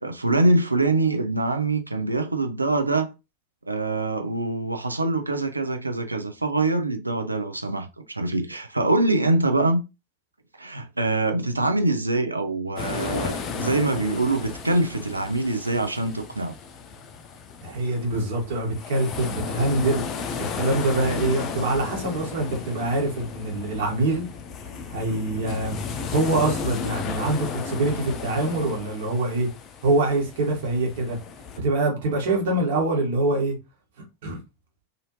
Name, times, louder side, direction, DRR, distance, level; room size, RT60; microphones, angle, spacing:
voice 1, 0.0-3.1 3.7-9.8 10.6-16.5, right 2 dB, 80° right, 0.5 m, -24 dB
sound 1, 12.8-31.6, left 5 dB, 35° left, 0.5 m, -34 dB
voice 2, 17.6-20.0 20.5-24.3 24.9-29.5 29.8-31.2 31.6-33.5 34.2-34.4, right 2 dB, 55° right, 1.3 m, -24 dB
2.7 x 2.4 x 3.0 m
figure-of-eight pair, 90°, 0 cm